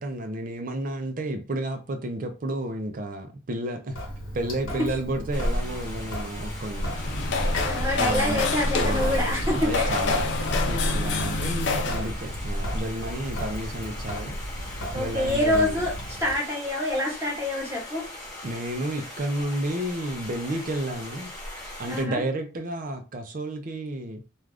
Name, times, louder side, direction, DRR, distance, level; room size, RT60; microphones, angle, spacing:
voice 1, 0.0-4.0 4.3-6.9 7.9-8.4 8.8-14.4 14.9-15.8 18.4-21.3 21.8-24.2, right 1 dB, 40° right, 0.4 m, -31 dB
Sink (filling or washing) / Drip, 3.9-16.4, equal, 80° left, 1.0 m, -35 dB
sound 1, 5.3-22.0, equal, 15° left, 1.0 m, -35 dB
sound 2, 6.8-12.1, left 4 dB, 55° left, 0.4 m, -28 dB
voice 2, 7.7-9.9 14.9-15.9 16.2-18.0 21.9-22.2, left 1 dB, 15° right, 1.0 m, -26 dB
2.4 x 2.3 x 3.3 m
head